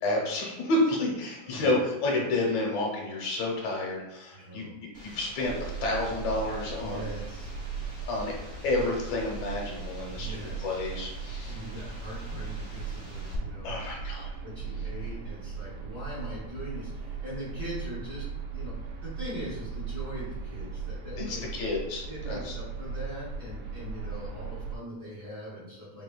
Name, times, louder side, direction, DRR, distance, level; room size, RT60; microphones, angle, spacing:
voice 1, 0.0-4.7 5.0-5.5 5.8-7.1 8.1-8.3 8.6-11.6 13.6-14.3 21.2-22.5, left 2 dB, 70° left, -2 dB, 1.9 m, -30 dB
voice 2, 1.4-1.8 4.3-4.8 6.8-7.6 10.1-10.7 11.4-13.7 14.4-21.5 22.1-26.0, equal, 45° right, -10 dB, 1.5 m, -41 dB
sound 1, 4.9-13.4, equal, 30° left, 0.9 m, -47 dB
sound 2, 5.4-24.8, right 5 dB, 85° right, 2.1 m, -38 dB
4.9 x 3.7 x 2.3 m, 1.0 s
omnidirectional pair, 3.4 m